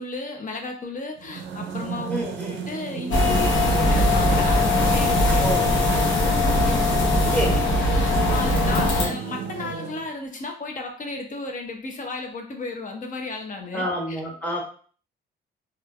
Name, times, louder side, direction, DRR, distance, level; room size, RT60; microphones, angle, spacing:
voice 1, 0.0-2.1 2.5-6.2 6.5-7.3 7.9-13.8, left 3 dB, 40° left, 3 dB, 0.6 m, -34 dB
sound 1, 1.2-10.1, right 7 dB, 75° right, 0.5 m, -32 dB
voice 2, 2.1-2.6 5.4-5.7 7.3-7.6 9.0-9.1 13.7-14.6, equal, 5° left, -2 dB, 1.1 m, -28 dB
sound 2, 3.1-9.1, left 2 dB, 70° left, 0.9 m, -20 dB
3.0 x 2.4 x 2.3 m, 0.43 s
cardioid pair, 90°, 20 cm